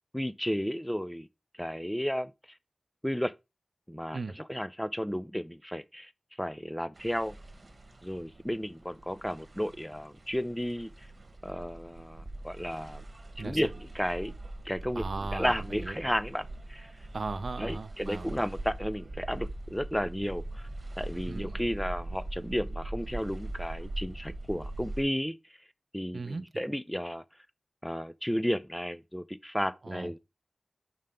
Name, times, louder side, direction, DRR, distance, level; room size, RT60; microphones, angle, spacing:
voice 1, 0.1-1.3 1.6-2.3 3.0-3.3 3.9-6.1 6.4-7.4 8.0-11.1 11.4-13.0 13.4-14.3 14.6-15.0 15.3-16.9 17.6-20.7 21.0-25.4 25.9-27.2 27.8-30.2, equal, 5° left, 0.4 m, -33 dB
sound 1, 6.9-25.0, right 2 dB, 50° right, 1.4 m, -41 dB
voice 2, 15.0-15.5 15.8-16.0 17.1-18.3 21.3-21.6 26.1-26.5 29.8-30.2, right 3 dB, 75° right, 0.6 m, -37 dB
5.6 x 5.4 x 3.7 m
wide cardioid pair, 75°, 0 cm